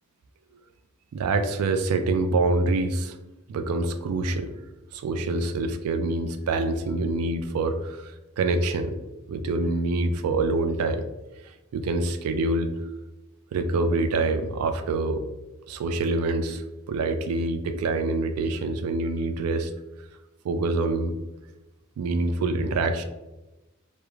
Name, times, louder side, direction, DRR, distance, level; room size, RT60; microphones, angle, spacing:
voice 1, 1.1-3.2 3.5-4.5 4.9-9.0 9.3-11.0 11.7-12.7 13.5-15.2 15.7-19.7 20.4-21.1 22.0-23.0, right 3 dB, 85° right, 8 dB, 0.3 m, -26 dB
3.0 x 2.0 x 2.3 m, 1.0 s
head